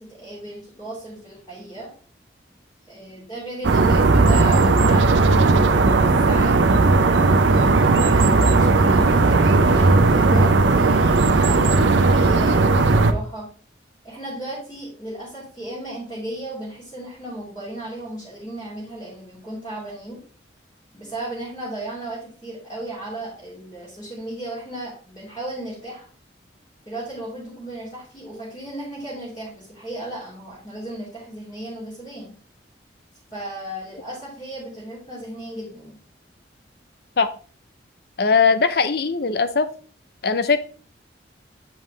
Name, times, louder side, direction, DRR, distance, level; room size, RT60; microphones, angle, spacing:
voice 1, 0.0-1.9 2.9-5.7 6.2-6.6 7.5-13.5 14.0-20.2 20.9-26.1 26.8-32.3 33.3-36.0, right 1 dB, 20° left, -9 dB, 2.9 m, -35 dB
sound 1, 3.6-13.1, right 3 dB, 80° right, 0.6 m, -16 dB
voice 2, 38.2-39.7 40.2-40.6, left 5 dB, 55° left, 11 dB, 0.6 m, -19 dB
7.8 x 5.4 x 3.2 m, 0.41 s
head